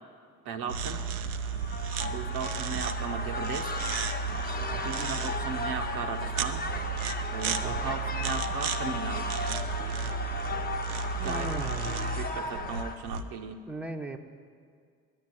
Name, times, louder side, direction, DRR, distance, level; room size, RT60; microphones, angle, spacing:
voice 1, 0.4-1.1 2.0-3.7 4.8-6.7 7.3-9.3 11.2-13.6, right 6 dB, 55° right, 5 dB, 0.9 m, -37 dB
sound 1, 0.7-13.2, right 6 dB, 80° right, 0.6 m, -34 dB
sound 2, 1.3-12.9, left 3 dB, 20° left, 1.1 m, -36 dB
voice 2, 4.6-5.1 7.6-8.0 11.2-12.2 13.7-14.2, right 2 dB, 5° right, 4 dB, 0.9 m, -39 dB
10.0 x 9.6 x 9.5 m, 2.1 s
figure-of-eight pair, 45°, 43 cm